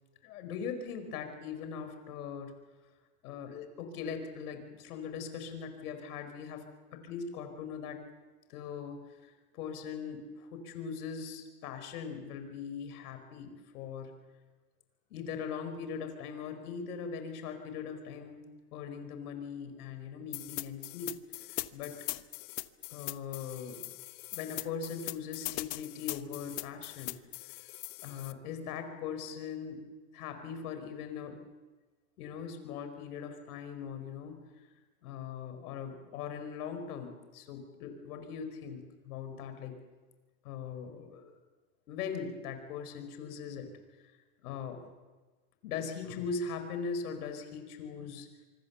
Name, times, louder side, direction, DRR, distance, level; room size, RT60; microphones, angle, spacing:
voice 1, 0.2-2.5 3.2-6.6 6.9-8.0 8.5-14.1 15.1-18.5 18.7-21.2 21.5-22.0 22.9-23.8 24.3-27.2 28.0-29.8 30.1-31.4 32.2-34.4 35.0-39.8 40.4-41.4 41.9-43.7 44.4-44.8 45.6-48.3, left 6 dB, 85° left, 7 dB, 4.8 m, -40 dB
sound 1, 20.3-28.3, left 21 dB, 55° left, 1.1 m, -40 dB
26.0 x 24.0 x 7.0 m, 1.3 s
supercardioid pair, 145°, 44 cm